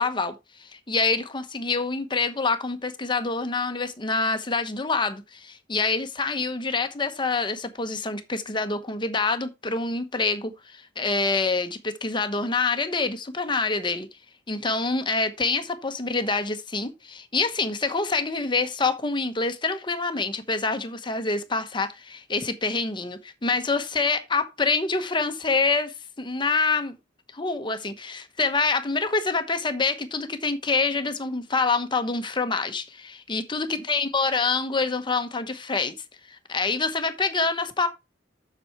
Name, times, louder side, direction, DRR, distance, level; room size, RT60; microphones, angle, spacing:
voice 1, 0.0-14.1 14.5-27.0 27.3-35.9 36.3-37.9, left 4 dB, 25° left, 1.0 m, -26 dB
7.5 x 6.9 x 4.4 m
head